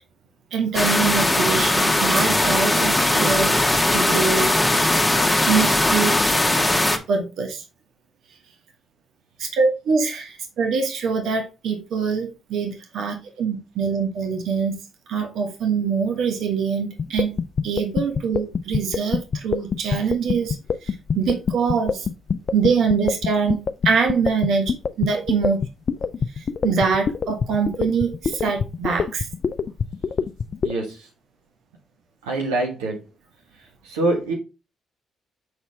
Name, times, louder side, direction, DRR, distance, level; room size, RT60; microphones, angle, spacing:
voice 1, 0.5-3.6 3.9-4.5 5.5-6.1 7.1-7.6 9.4-14.7 15.1-17.3 17.6-20.6 20.8-22.0 22.5-23.6 23.8-25.6 26.4-29.3, right 5 dB, 65° right, 1.3 m, -24 dB
sound 1, 0.7-7.0, left 1 dB, 10° left, 1.3 m, -19 dB
sound 2, 17.0-30.7, left 6 dB, 50° left, 0.4 m, -24 dB
voice 2, 30.6-31.1 32.2-33.1 33.6-34.3, right 2 dB, 85° right, 1.3 m, -25 dB
7.0 x 4.1 x 3.5 m
hypercardioid pair, 45°, 0 cm